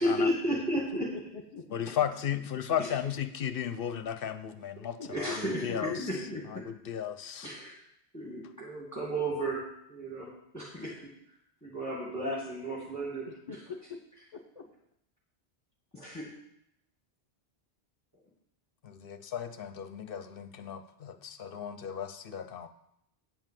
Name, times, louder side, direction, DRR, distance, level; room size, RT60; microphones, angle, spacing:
voice 1, 0.0-1.1 2.8-2.9 5.1-6.4 7.4-7.7 8.1-9.6 9.9-11.0 11.6-13.3 15.9-16.3, right 1 dB, 15° left, -5 dB, 1.9 m, -33 dB
voice 2, 1.1-1.8 5.0-5.2 5.5-6.4 13.2-14.0 14.3-14.6, left 5 dB, 40° left, 3 dB, 1.4 m, -42 dB
voice 3, 1.7-6.0 6.5-7.5 18.8-22.7, left 9 dB, 60° left, 10 dB, 0.8 m, -35 dB
9.0 x 5.5 x 7.5 m, 0.76 s
omnidirectional pair, 1.1 m